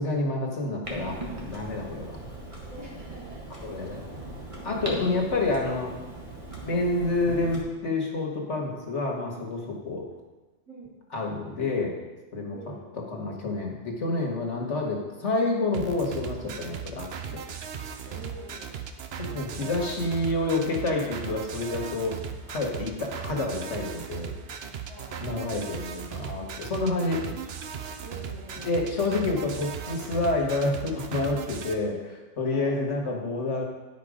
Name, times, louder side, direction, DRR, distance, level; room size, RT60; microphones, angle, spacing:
voice 1, 0.0-2.2 3.6-4.1 4.6-5.9 6.6-10.1 11.1-12.0 12.3-12.6 13.1-17.1 19.2-22.2 22.5-24.3 25.2-27.2 28.6-33.7, left 2 dB, 70° left, 0 dB, 1.8 m, -28 dB
Clock, 0.8-7.6, right 2 dB, 25° right, 1.5 m, -39 dB
voice 2, 2.7-3.6 10.7-10.9 12.5-12.9 18.0-18.8 24.9-25.5 26.1-26.4 28.0-29.1 32.5-32.8, right 2 dB, 85° right, -8 dB, 3.5 m, -46 dB
sound 1, 15.7-31.7, right 7 dB, 60° right, 0.9 m, -38 dB
10.5 x 5.4 x 5.0 m, 1.1 s
omnidirectional pair, 1.3 m